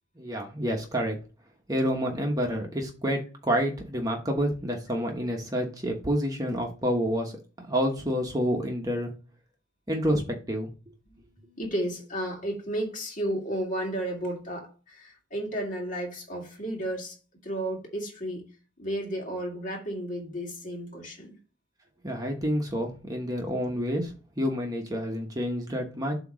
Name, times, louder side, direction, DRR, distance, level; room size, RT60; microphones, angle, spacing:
voice 1, 0.2-1.2 1.7-7.4 7.7-9.1 9.9-10.7 22.0-26.1, equal, 20° right, 1.1 m, -28 dB
voice 2, 11.1-17.2 17.4-18.4 18.8-21.4, right 1 dB, 40° left, 2.1 m, -33 dB
7.8 x 3.0 x 6.2 m
head